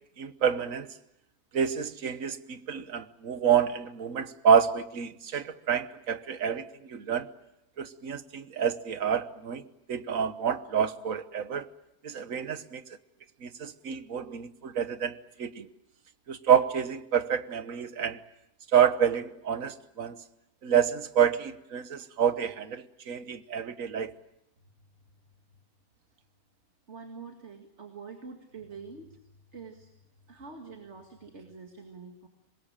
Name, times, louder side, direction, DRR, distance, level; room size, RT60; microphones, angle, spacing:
voice 1, 0.2-0.9 1.5-7.3 7.8-11.7 12.0-12.8 13.4-15.7 16.3-18.2 18.7-20.2 20.6-24.2, right 8 dB, 60° right, 1.5 m, -28 dB
voice 2, 26.9-29.2 29.5-29.9 30.3-32.3, right 4 dB, 45° right, 2.4 m, -45 dB
26.0 x 21.5 x 8.8 m
omnidirectional pair, 1.6 m